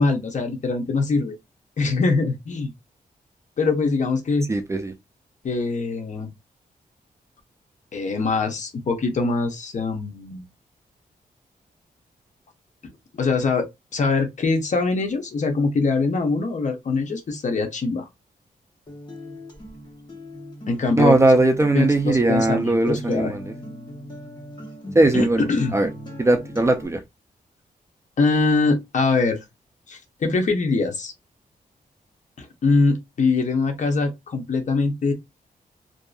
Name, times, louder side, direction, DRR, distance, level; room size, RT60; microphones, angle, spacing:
voice 1, 0.0-1.3 1.8-2.7 3.6-4.5 5.4-6.3 7.9-10.4 13.1-13.7 13.9-18.1 20.7-21.3 21.7-23.3 25.1-25.8 28.2-29.4 29.9-31.1 32.4-35.1, left 3 dB, 55° left, 0.7 m, -23 dB
voice 2, 4.5-4.9 21.0-23.4 24.9-25.5 25.7-25.9 26.2-27.0, right 2 dB, 20° right, 0.3 m, -19 dB
Acoustic guitar, 18.9-26.9, equal, 30° left, 1.1 m, -38 dB
2.6 x 2.4 x 2.3 m
wide cardioid pair, 130°, 15 cm